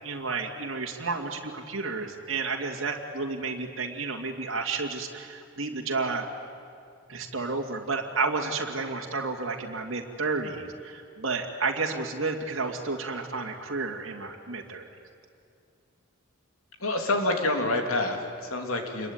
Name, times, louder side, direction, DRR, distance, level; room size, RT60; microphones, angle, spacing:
voice 1, 0.0-6.3 7.1-14.9, right 4 dB, 70° right, 0 dB, 2.5 m, -31 dB
voice 2, 16.8-19.1, left 2 dB, 90° left, 4 dB, 3.3 m, -27 dB
27.5 x 22.0 x 9.5 m, 2.5 s
head